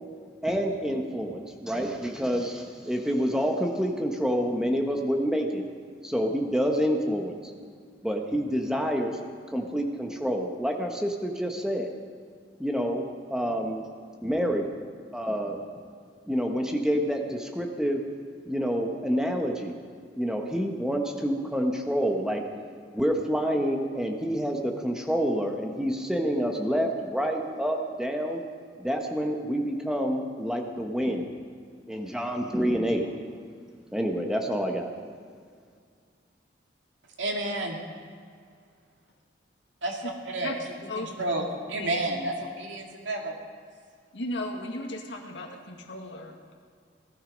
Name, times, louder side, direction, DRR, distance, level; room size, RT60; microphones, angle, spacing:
voice 1, 0.4-5.6 6.0-7.5 8.0-9.2 9.5-11.9 12.6-13.0 13.3-13.8 14.2-14.7 15.1-15.6 16.3-18.0 18.4-19.7 20.2-22.4 22.9-28.4 28.8-31.3 31.9-33.2 33.9-34.9, equal, 5° right, 2 dB, 1.2 m, -28 dB
voice 2, 37.2-37.8 39.8-40.0 40.3-40.5 41.0-41.4 41.7-43.3, right 2 dB, 85° right, 1 dB, 2.3 m, -30 dB
voice 3, 40.9-41.5 41.8-41.9 44.1-46.5, left 1 dB, 75° left, 1 dB, 1.9 m, -36 dB
18.0 x 12.5 x 5.3 m, 2.1 s
head